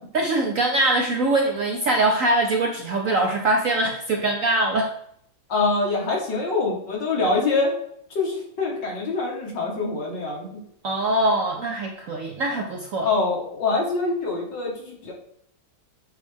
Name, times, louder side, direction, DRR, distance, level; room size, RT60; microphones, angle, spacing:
voice 1, 0.1-4.9 10.8-13.1, right 2 dB, 60° right, 1 dB, 0.9 m, -22 dB
voice 2, 5.5-7.7 8.1-10.6 13.0-15.1, left 3 dB, 70° left, -2 dB, 2.3 m, -25 dB
8.3 x 3.3 x 3.5 m, 0.69 s
omnidirectional pair, 2.1 m